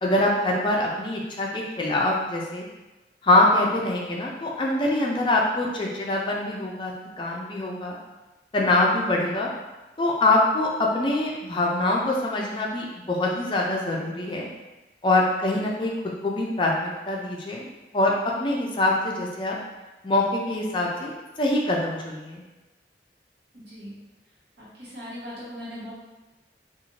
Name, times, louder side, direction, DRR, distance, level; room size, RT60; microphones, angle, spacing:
voice 1, 0.0-2.6 3.2-6.9 7.2-8.0 8.5-9.5 10.0-14.5 15.0-15.9 16.2-17.7 17.9-18.1 18.4-19.6 20.0-22.4, left 2 dB, 25° left, -2 dB, 0.4 m, -24 dB
voice 2, 23.5-24.0 24.8-25.9, equal, 75° right, -8 dB, 1.1 m, -38 dB
2.6 x 2.4 x 3.0 m, 1.1 s
head